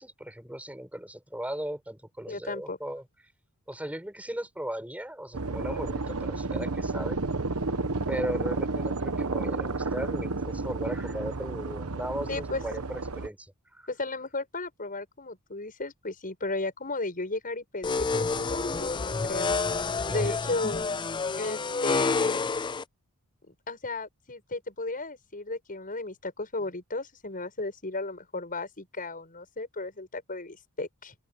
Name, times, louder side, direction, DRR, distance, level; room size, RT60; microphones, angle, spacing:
voice 1, 0.0-3.0 3.7-7.2 8.1-13.9 20.1-20.5, right 1 dB, 5° right, 7.9 m, -37 dB
voice 2, 2.3-2.8 12.3-12.6 13.9-19.5 20.1-20.9 21.4-22.4 23.5-31.1, left 2 dB, 40° left, 7.4 m, -34 dB
sound 1, 5.3-13.3, right 3 dB, 70° right, 1.2 m, -31 dB
sound 2, 17.8-22.8, left 4 dB, 20° left, 0.4 m, -28 dB
open air
head